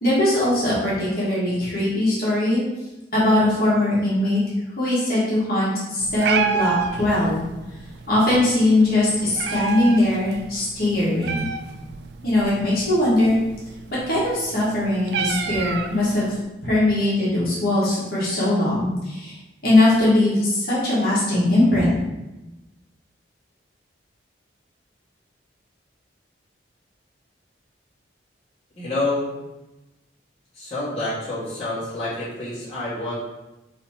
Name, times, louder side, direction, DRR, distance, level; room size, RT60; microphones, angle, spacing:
voice 1, 0.0-2.6 3.1-4.4 4.8-7.4 8.1-11.4 12.2-13.4 14.1-16.3 16.6-19.3 19.6-21.9, left 1 dB, 50° left, -8 dB, 1.5 m, -20 dB
Meow, 6.0-16.4, right 6 dB, 65° right, 0.3 m, -31 dB
voice 2, 28.8-29.3 30.5-33.2, left 2 dB, 30° left, -11 dB, 1.5 m, -27 dB
4.0 x 2.8 x 4.3 m, 1.0 s
head